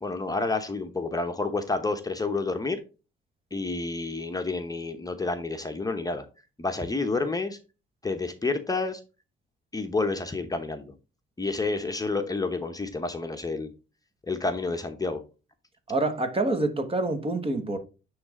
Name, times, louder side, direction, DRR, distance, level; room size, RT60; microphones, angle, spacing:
voice 1, 0.0-2.8 3.5-6.2 6.6-7.6 8.0-9.0 9.7-10.9 11.4-13.7 14.3-15.2, left 3 dB, 20° left, 0.8 m, -29 dB
voice 2, 15.9-17.8, right 2 dB, 30° right, 1.2 m, -26 dB
9.6 x 3.2 x 3.7 m
cardioid pair, 90°, 20 cm